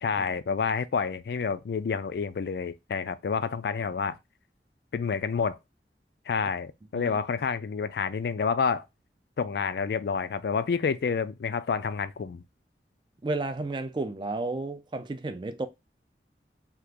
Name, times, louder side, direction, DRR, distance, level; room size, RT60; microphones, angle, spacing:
voice 1, 0.0-4.2 4.9-5.6 6.3-8.9 9.4-12.4, left 5 dB, 65° left, 0.3 m, -29 dB
voice 2, 13.2-15.7, right 2 dB, 25° right, 0.4 m, -32 dB
2.9 x 2.4 x 3.4 m
head